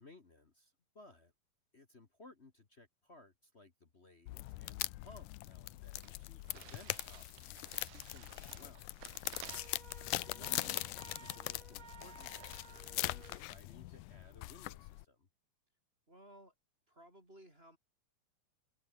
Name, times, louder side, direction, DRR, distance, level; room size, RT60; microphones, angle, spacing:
voice 1, 0.0-1.3 1.7-8.8 10.3-15.3, left 3 dB, 40° left, 0.9 m, -60 dB
sound 1, 4.3-15.0, left 18 dB, 80° left, 2.1 m, -42 dB
sound 2, 5.3-5.4 5.6-5.7 6.0-13.5, right 17 dB, 75° right, 2.1 m, -57 dB
voice 2, 9.3-9.7 16.1-16.5 16.9-17.8, right 1 dB, 15° right, 5.9 m, -59 dB
Wind instrument woodwind instrument, 9.5-13.4, right 7 dB, 45° right, 2.5 m, -56 dB
omnidirectional pair, 3.7 m